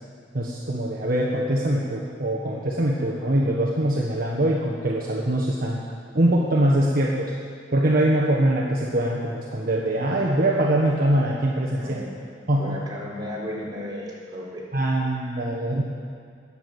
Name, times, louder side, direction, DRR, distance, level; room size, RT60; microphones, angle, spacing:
voice 1, 0.3-5.8 6.1-7.3 7.7-12.1 12.5-12.8 14.7-15.8, right 1 dB, 50° right, -3 dB, 1.4 m, -23 dB
voice 2, 11.7-12.1 12.6-14.6 15.1-15.5, left 1 dB, 25° right, -5 dB, 4.0 m, -35 dB
21.0 x 7.3 x 7.9 m, 2.2 s
head